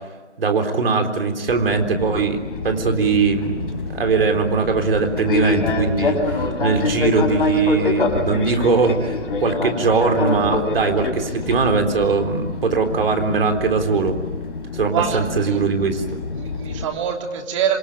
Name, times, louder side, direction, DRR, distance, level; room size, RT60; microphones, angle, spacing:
voice 1, 0.4-2.4 2.6-14.2 14.7-16.2, right 4 dB, 55° right, 5 dB, 3.9 m, -20 dB
Fixed-wing aircraft airplane, 1.5-16.8, left 3 dB, 50° left, 5.0 m, -26 dB
voice 2, 14.9-15.6 16.3-17.8, right 8 dB, 25° right, 4 dB, 2.9 m, -25 dB
26.5 x 24.5 x 9.1 m, 1.3 s
figure-of-eight pair, 155°, 34 cm